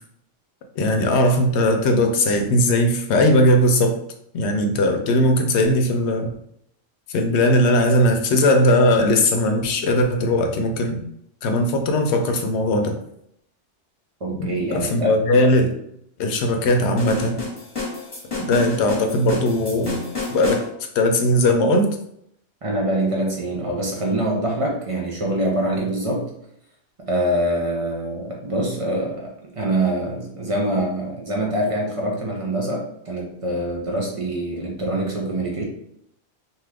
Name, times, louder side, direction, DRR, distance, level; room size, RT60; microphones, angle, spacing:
voice 1, 0.8-4.0 4.3-6.3 7.1-11.0 11.4-12.9 14.4-15.7 16.2-17.4 18.4-20.0 20.3-20.6 20.9-21.9, left 1 dB, 70° left, 4 dB, 0.8 m, -19 dB
voice 2, 14.2-15.4 22.6-26.3 27.0-35.6, right 1 dB, 55° right, -2 dB, 0.3 m, -25 dB
sound 1, 17.0-20.7, left 3 dB, 20° left, 1.0 m, -30 dB
2.7 x 2.3 x 3.3 m, 0.72 s
omnidirectional pair, 1.3 m